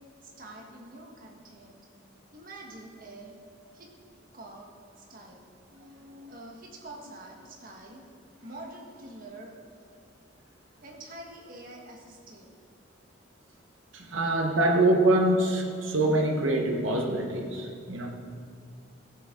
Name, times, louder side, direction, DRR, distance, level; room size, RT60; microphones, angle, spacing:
voice 1, 0.2-1.8 2.3-3.3 3.7-3.9 4.3-4.7 5.0-5.4 6.2-8.0 8.4-9.6 10.8-12.5, right 2 dB, 45° right, 0 dB, 1.5 m, -46 dB
voice 2, 5.7-6.4 13.9-18.1, right 1 dB, 80° right, 1 dB, 1.2 m, -25 dB
15.0 x 8.0 x 3.8 m, 2.3 s
head